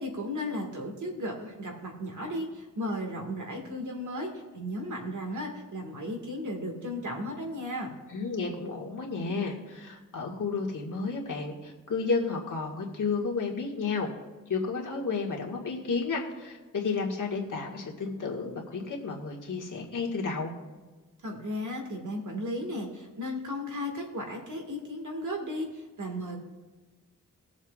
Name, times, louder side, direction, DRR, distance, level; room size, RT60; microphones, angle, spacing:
voice 1, 0.0-7.9 21.2-26.4, left 1 dB, 60° right, 1 dB, 1.9 m, -35 dB
voice 2, 8.1-14.1 14.5-20.5, left 4 dB, 65° left, -2 dB, 1.9 m, -32 dB
20.5 x 7.2 x 2.4 m, 1.3 s
wide cardioid pair, 145°, 33 cm